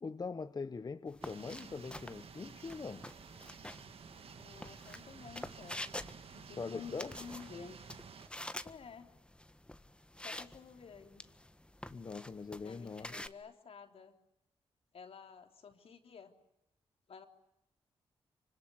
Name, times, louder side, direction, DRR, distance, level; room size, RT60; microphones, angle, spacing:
voice 1, 0.0-3.1 6.6-7.1 11.9-13.1, left 4 dB, 40° left, 1.0 m, -42 dB
sound 1, 1.1-13.3, left 1 dB, 10° left, 1.5 m, -48 dB
sound 2, 1.2-8.3, right 6 dB, 70° right, 2.3 m, -53 dB
voice 2, 4.3-5.9 6.3-7.9 8.6-9.1 10.2-11.3 12.6-14.2 14.9-16.4 17.1-17.3, left 6 dB, 70° left, 3.4 m, -52 dB
25.5 x 25.0 x 9.4 m
cardioid pair, 70°, 10 cm